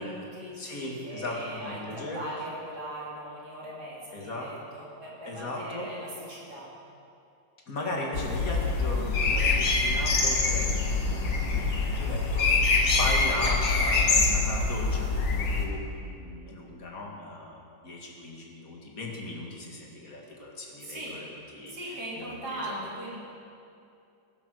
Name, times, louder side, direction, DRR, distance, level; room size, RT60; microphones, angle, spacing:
voice 1, 0.0-6.7 20.8-21.2 21.7-23.2, right 1 dB, 55° right, -6 dB, 3.5 m, -39 dB
voice 2, 0.6-2.2 4.1-4.5 5.3-5.9 7.7-21.3 21.5-22.7, left 1 dB, 45° left, -1 dB, 2.5 m, -37 dB
sound 1, 8.1-15.7, left 3 dB, 70° left, 2.1 m, -25 dB
16.5 x 9.1 x 6.5 m, 2.6 s
omnidirectional pair, 2.1 m